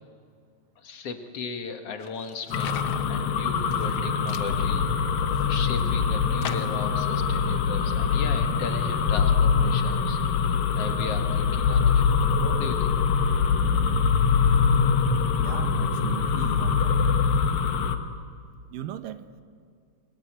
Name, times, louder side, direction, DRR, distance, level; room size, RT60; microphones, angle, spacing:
voice 1, 0.8-13.0, left 5 dB, 50° left, 5 dB, 2.3 m, -37 dB
sound 1, 2.0-3.1 3.6-4.0 4.3-4.5 5.1-5.9 6.4-6.9, left 9 dB, 65° left, 1.5 m, -39 dB
sound 2, 2.5-18.0, left 5 dB, 85° left, 3.2 m, -23 dB
voice 2, 15.4-17.1 18.7-19.3, right 10 dB, 80° right, 10 dB, 2.6 m, -37 dB
28.5 x 22.5 x 8.9 m, 2.2 s
omnidirectional pair, 3.9 m